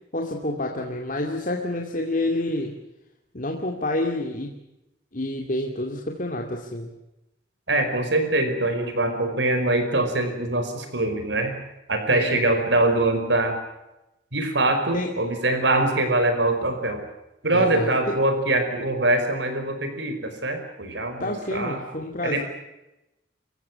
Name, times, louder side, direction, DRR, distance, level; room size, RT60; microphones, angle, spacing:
voice 1, 0.1-2.7 3.3-4.5 5.1-6.9 12.1-12.4 14.9-15.1 17.5-17.9 21.2-22.4, left 1 dB, 45° left, 1 dB, 2.5 m, -28 dB
voice 2, 7.7-11.6 11.9-13.6 14.3-17.0 17.4-21.8 22.2-22.4, right 2 dB, 70° right, 6 dB, 5.2 m, -23 dB
27.5 x 16.0 x 9.6 m, 0.93 s
head